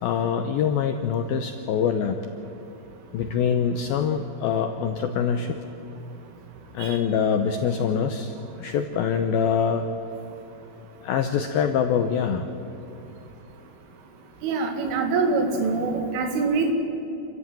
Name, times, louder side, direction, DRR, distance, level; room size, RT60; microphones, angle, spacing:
voice 1, 0.0-2.2 3.1-5.6 6.7-9.8 11.0-12.5, left 7 dB, 85° left, 7 dB, 2.1 m, -24 dB
voice 2, 14.4-16.7, right 4 dB, 85° right, 5 dB, 4.9 m, -24 dB
28.0 x 15.0 x 9.0 m, 2.9 s
omnidirectional pair, 5.5 m